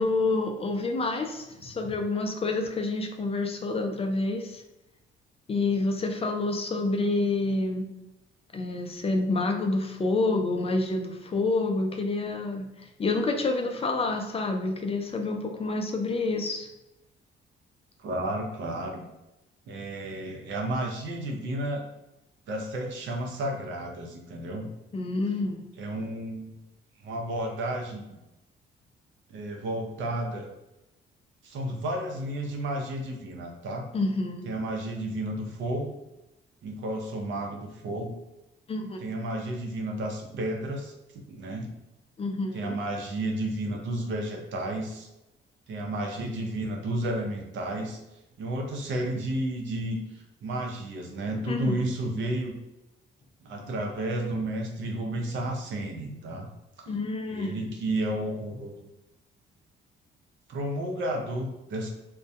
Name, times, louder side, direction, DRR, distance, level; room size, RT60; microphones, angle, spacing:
voice 1, 0.0-4.6 5.5-7.9 8.5-16.7 24.9-25.6 33.9-34.5 38.7-39.1 42.2-42.8 51.5-51.9 56.9-57.6, left 3 dB, 30° left, 4 dB, 0.4 m, -28 dB
voice 2, 18.0-19.1 19.7-21.8 22.5-24.7 25.8-26.5 27.0-28.0 29.3-30.5 31.4-33.8 34.4-35.9 36.6-38.1 39.0-41.7 42.5-45.1 45.7-48.0 48.4-52.5 53.4-56.5 56.8-57.0 57.3-58.7 60.5-61.9, right 1 dB, 70° right, 1 dB, 0.6 m, -32 dB
2.2 x 2.1 x 2.6 m, 0.92 s
cardioid pair, 90°, 20 cm